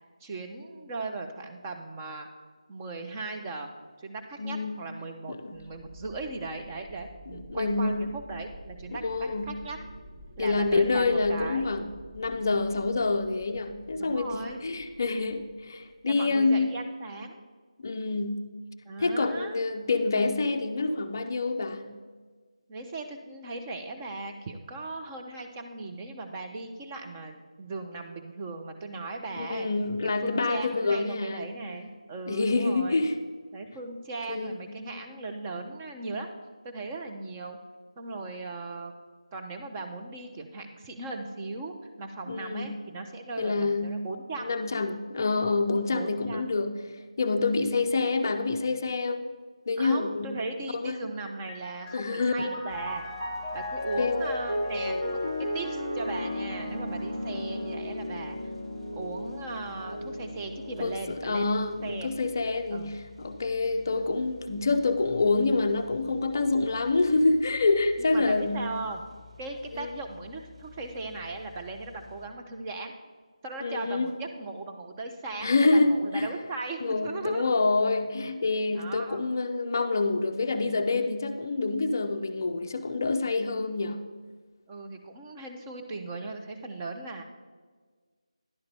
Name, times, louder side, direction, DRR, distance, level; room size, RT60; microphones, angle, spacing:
voice 1, 0.2-2.3 2.7-3.7 4.0-9.8 10.4-11.7 14.0-14.6 16.0-17.4 18.8-19.6 22.7-29.7 30.0-33.0 33.5-36.3 36.6-37.6 38.0-38.9 39.3-44.6 45.9-46.5 49.8-53.0 53.5-55.2 55.5-58.4 59.0-61.5 61.8-62.1 62.7-62.9 68.0-69.1 69.4-72.9 73.4-77.5 78.7-79.2 84.7-87.2, right 3 dB, 15° right, 3 dB, 0.5 m, -38 dB
voice 2, 4.4-4.8 5.3-5.6 7.3-8.1 8.9-9.6 10.4-11.9 12.1-16.7 17.8-18.4 19.0-21.9 29.3-31.5 32.3-33.2 34.3-34.8 42.3-42.7 43.4-44.0 44.4-46.8 47.2-49.3 49.7-50.4 50.7-51.0 51.9-52.5 54.0-54.2 57.3-57.4 60.8-68.7 69.7-69.9 73.6-74.1 75.4-76.3 76.8-84.0, left 3 dB, 30° left, 7 dB, 0.5 m, -27 dB
sound 1, 5.5-16.2, right 1 dB, 35° right, 1.0 m, -48 dB
Piano, 51.3-61.0, left 1 dB, 90° right, 2.3 m, -34 dB
sound 2, 52.7-72.3, left 5 dB, 70° right, 2.5 m, -52 dB
11.0 x 3.9 x 6.7 m, 1.5 s
figure-of-eight pair, 165°, 3 cm